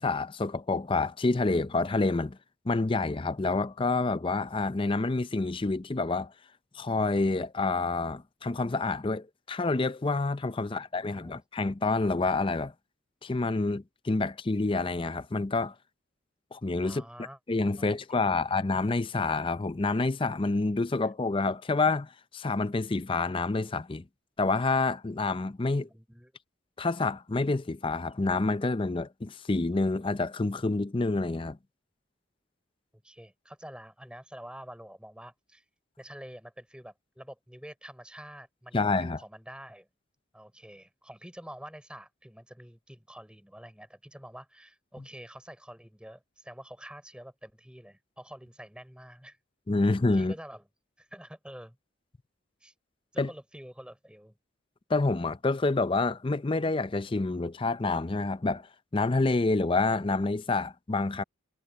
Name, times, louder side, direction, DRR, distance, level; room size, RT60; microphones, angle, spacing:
voice 1, 0.0-2.4 2.7-6.3 6.7-12.7 13.2-15.7 16.5-17.0 17.5-24.0 24.4-25.9 26.8-31.6 38.7-39.2 49.7-50.3 53.2-53.3 54.9-58.7 58.9-61.2, left 3 dB, 25° left, 0.5 m, -28 dB
voice 2, 10.6-11.4 16.8-17.4 17.8-18.5 25.8-26.3 33.0-35.6 36.0-39.9 40.3-49.4 50.1-50.6 51.0-51.8 52.6-52.7 53.1-54.4, equal, 5° right, 4.6 m, -47 dB
head